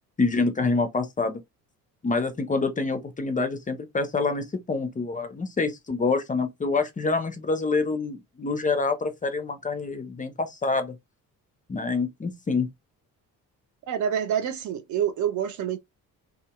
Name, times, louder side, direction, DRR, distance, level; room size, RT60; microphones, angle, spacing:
voice 1, 0.2-1.4 2.0-11.0 11.7-12.7, left 3 dB, 20° left, 0.5 m, -26 dB
voice 2, 13.9-15.8, right 9 dB, 40° right, 0.4 m, -27 dB
2.7 x 2.6 x 2.2 m
figure-of-eight pair, 45°, 46 cm